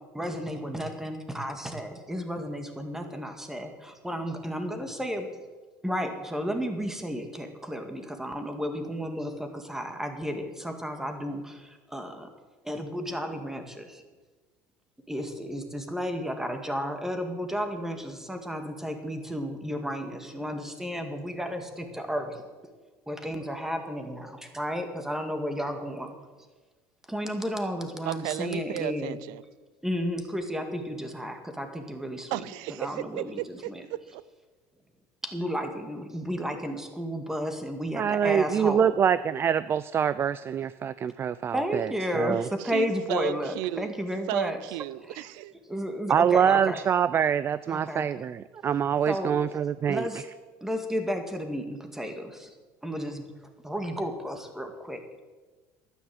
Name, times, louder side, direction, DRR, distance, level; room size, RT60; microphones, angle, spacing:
voice 1, 0.1-3.7 4.0-5.3 5.8-12.3 12.6-14.0 15.1-22.4 23.1-26.2 27.1-29.2 29.8-32.4 32.8-33.8 35.2-39.0 41.5-44.6 45.1-45.3 45.7-46.8 47.7-48.1 49.1-49.4 49.9-50.2 50.6-52.6 52.8-53.3 53.6-55.0, equal, 5° right, 5 dB, 2.0 m, -32 dB
voice 2, 28.0-29.4 32.1-34.2 42.6-43.9 44.3-45.5, right 15 dB, 80° right, 19 dB, 0.6 m, -34 dB
voice 3, 37.9-42.5 46.1-50.1, right 8 dB, 35° right, 16 dB, 0.4 m, -25 dB
12.0 x 9.9 x 7.7 m, 1.3 s
supercardioid pair, 115°, 7 cm